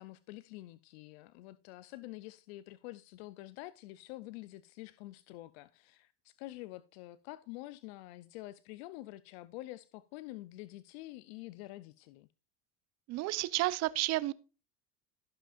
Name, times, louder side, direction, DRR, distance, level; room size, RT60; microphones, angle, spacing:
voice 1, 0.0-12.3, left 17 dB, 75° left, 0.6 m, -47 dB
voice 2, 13.1-14.3, right 17 dB, 55° right, 0.8 m, -31 dB
16.5 x 5.7 x 2.5 m
supercardioid pair, 110°, 32 cm